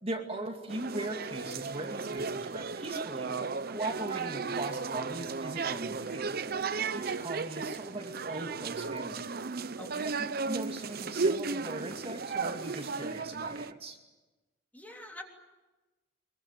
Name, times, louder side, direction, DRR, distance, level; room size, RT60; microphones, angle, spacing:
voice 1, 0.0-9.2 10.0-14.0, right 1 dB, 30° right, 2 dB, 2.4 m, -39 dB
sound 1, 0.7-13.7, right 4 dB, 55° right, 0.8 m, -35 dB
voice 2, 14.7-15.2, left 1 dB, 10° left, 1 dB, 3.4 m, -45 dB
23.5 x 22.5 x 9.3 m, 1.2 s
head